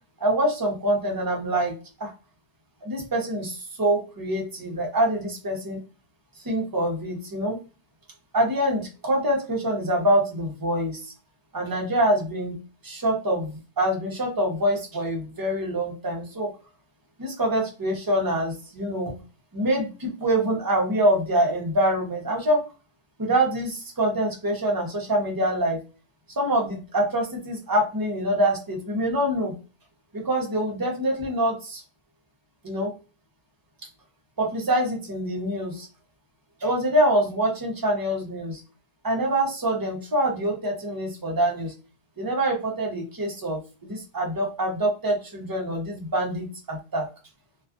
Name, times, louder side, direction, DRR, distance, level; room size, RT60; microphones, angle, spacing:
voice 1, 0.2-2.1 2.8-5.8 6.4-7.6 8.3-11.1 11.5-12.5 12.8-16.5 17.2-19.1 19.5-22.6 23.2-25.8 26.4-29.5 30.1-31.8 32.6-32.9 34.4-35.9 36.6-38.6 39.0-41.7 42.2-47.1, right 1 dB, 25° right, 0 dB, 0.6 m, -25 dB
2.3 x 2.3 x 2.4 m, 0.32 s
omnidirectional pair, 1.1 m